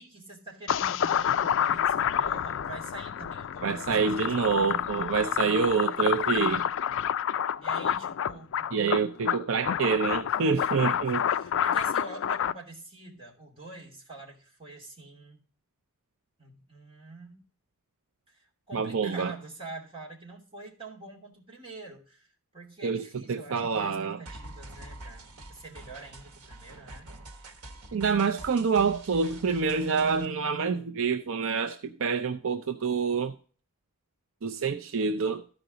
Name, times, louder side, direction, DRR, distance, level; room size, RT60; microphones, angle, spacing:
voice 1, 0.0-4.7 6.3-6.5 7.6-8.7 10.8-15.4 16.4-17.4 18.3-27.1, right 2 dB, 25° right, 2.6 m, -46 dB
sound 1, 0.7-12.5, left 9 dB, 55° left, 0.3 m, -28 dB
voice 2, 3.6-6.6 8.7-11.2 18.7-19.3 22.8-23.0 23.3-24.2 27.9-33.3 34.4-35.4, right 5 dB, 60° right, 0.5 m, -27 dB
sound 2, 24.3-30.3, right 2 dB, 80° right, 1.3 m, -46 dB
13.0 x 5.1 x 3.8 m
head